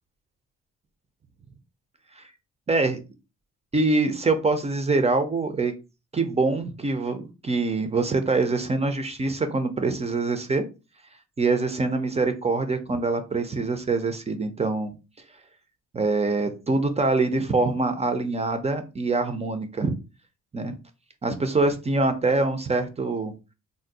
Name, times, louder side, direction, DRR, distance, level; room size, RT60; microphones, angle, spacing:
voice 1, 2.7-3.0 3.7-5.7 6.1-10.7 11.4-14.9 15.9-20.0 20.5-20.7 21.2-23.3, right 3 dB, 20° right, 8 dB, 0.4 m, -24 dB
2.6 x 2.0 x 3.9 m, 0.30 s
cardioid pair, 90°, 30 cm